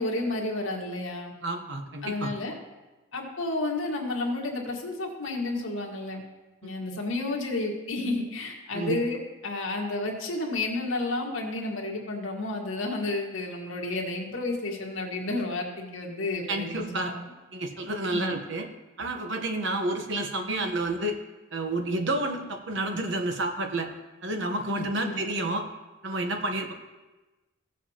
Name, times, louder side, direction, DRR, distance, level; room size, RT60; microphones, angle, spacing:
voice 1, 0.0-1.3 2.0-2.5 3.1-6.2 6.6-9.2 9.4-17.2 18.1-18.3 24.8-25.2, left 2 dB, 75° left, 0 dB, 1.7 m, -31 dB
voice 2, 1.4-2.3 6.6-6.7 8.7-9.0 16.5-17.1 17.5-18.7 19.0-21.2 21.5-23.9 24.2-25.6 26.0-26.7, right 2 dB, 60° right, 4 dB, 1.1 m, -30 dB
16.0 x 7.3 x 2.9 m, 1.1 s
head